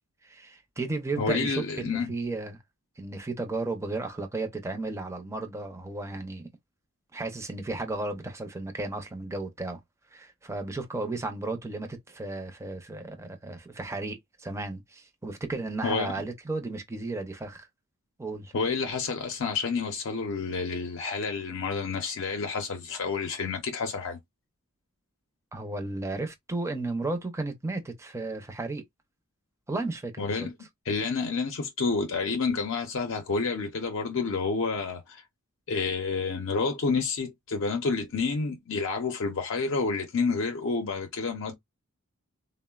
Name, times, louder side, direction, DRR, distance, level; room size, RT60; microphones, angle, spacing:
voice 1, 0.2-2.6 3.0-6.5 7.1-9.8 10.1-17.7 18.2-18.5 25.5-28.8 29.7-30.5, right 2 dB, 15° right, 0.5 m, -34 dB
voice 2, 1.2-2.1 15.8-16.1 18.5-24.2 30.2-30.5 30.9-35.2 35.7-41.5, left 4 dB, 60° left, 0.6 m, -29 dB
3.6 x 2.0 x 2.3 m
head